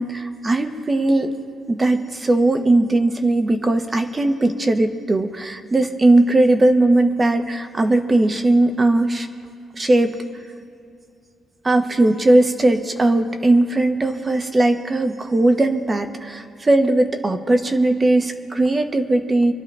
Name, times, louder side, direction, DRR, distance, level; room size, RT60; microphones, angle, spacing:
voice 1, 0.0-1.3 1.7-9.3 9.7-10.2 11.6-19.5, right 2 dB, 25° right, 6 dB, 1.2 m, -18 dB
26.0 x 12.0 x 3.4 m, 2.5 s
cardioid pair, 90°, 0 cm